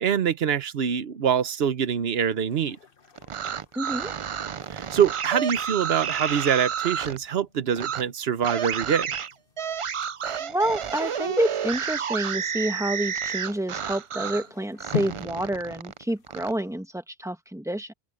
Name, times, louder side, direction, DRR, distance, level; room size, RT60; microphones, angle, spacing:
voice 1, 0.0-2.8 4.7-9.1, right 8 dB, 70° right, 1.1 m, -24 dB
sound 1, 2.5-16.8, left 8 dB, 60° left, 1.4 m, -44 dB
sound 2, 3.2-7.2 7.8-8.0 8.4-14.5 14.8-16.5, right 7 dB, 50° right, 0.4 m, -30 dB
voice 2, 3.7-4.1 10.4-17.9, right 1 dB, 5° right, 1.2 m, -28 dB
omnidirectional pair, 1.1 m